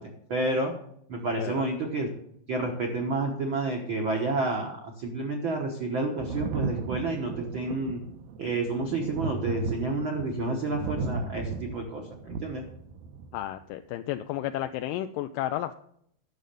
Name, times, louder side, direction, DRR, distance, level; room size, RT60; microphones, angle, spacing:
voice 1, 0.3-0.7 1.1-2.1 2.5-8.0 8.4-12.6, right 2 dB, 65° right, 1 dB, 1.2 m, -30 dB
voice 2, 1.4-1.7 13.3-15.7, left 13 dB, 85° left, 8 dB, 1.9 m, -32 dB
Thunder, 6.2-13.5 14.7-14.8, right 4 dB, 80° right, 2.6 m, -35 dB
11.0 x 6.4 x 6.7 m, 0.69 s
omnidirectional pair, 4.3 m